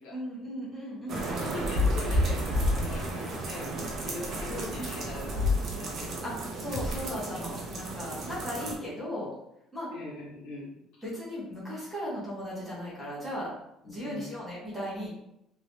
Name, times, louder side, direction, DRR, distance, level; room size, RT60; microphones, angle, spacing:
voice 1, 0.1-1.3 4.8-4.9 6.2-9.3 9.7-9.9 11.0-13.5 13.8-15.1, equal, ahead, -9 dB, 1.2 m, -37 dB
sound 1, 1.1-8.7, left 1 dB, 35° right, 0.6 m, -31 dB
voice 2, 1.4-5.4 5.8-6.1 9.9-10.7 13.8-14.3, left 2 dB, 70° left, -5 dB, 1.3 m, -41 dB
sound 2, 2.8-3.7 4.0-4.1 6.7-8.0, left 1 dB, 40° left, 0.3 m, -39 dB
3.0 x 2.9 x 2.8 m, 0.80 s
cardioid pair, 175°, 0 cm